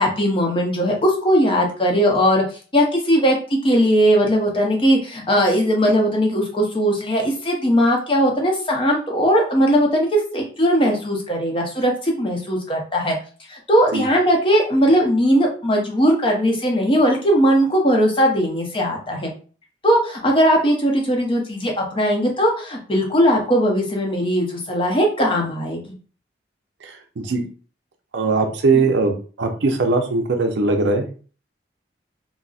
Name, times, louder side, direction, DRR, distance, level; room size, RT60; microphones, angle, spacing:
voice 1, 0.0-2.4 2.7-13.2 13.5-19.3 19.8-25.9 28.7-28.9, equal, 30° left, 0 dB, 0.7 m, -19 dB
voice 2, 26.8-27.4 28.1-31.1, right 3 dB, 75° right, 5 dB, 0.5 m, -20 dB
3.9 x 2.0 x 2.4 m, 0.38 s
head